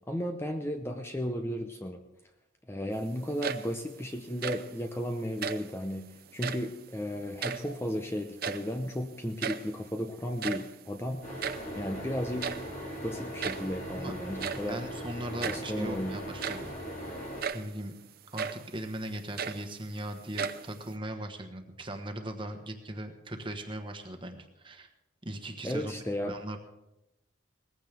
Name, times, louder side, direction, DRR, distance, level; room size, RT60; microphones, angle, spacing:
voice 1, 0.1-2.0 2.7-6.1 6.3-11.4 11.7-12.5 13.0-14.8 15.4-16.1 25.6-26.3, equal, 10° left, 5 dB, 0.7 m, -34 dB
sound 1, 3.2-3.9 4.2-4.8 5.3-5.8 6.3-6.8 7.1-8.0 8.2-8.9 9.1-9.2 9.4-9.8 10.2-11.8 12.4-12.8 13.4-13.8 14.4-14.7 15.4-15.7 16.2-16.8 17.4-17.7 18.4-18.7 19.1-20.0 20.4-21.0, right 6 dB, 50° right, 0.6 m, -36 dB
sound 2, 11.2-17.4, equal, 40° left, 4.1 m, -40 dB
voice 2, 14.7-16.7 17.0-17.2 17.5-18.0 18.3-24.9 25.2-25.9 26.2-26.6, right 1 dB, 25° right, 5 dB, 1.3 m, -39 dB
19.5 x 15.0 x 3.5 m, 0.92 s
head